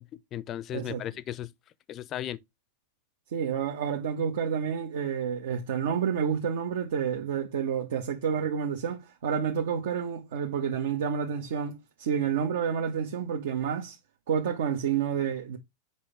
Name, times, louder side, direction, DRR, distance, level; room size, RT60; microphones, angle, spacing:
voice 1, 0.0-1.5 1.9-2.4, left 12 dB, 30° left, 0.6 m, -36 dB
voice 2, 0.7-1.0 3.3-14.0 14.3-15.6, right 7 dB, 55° right, 1.2 m, -29 dB
8.2 x 5.7 x 3.3 m
figure-of-eight pair, 90°, 0 cm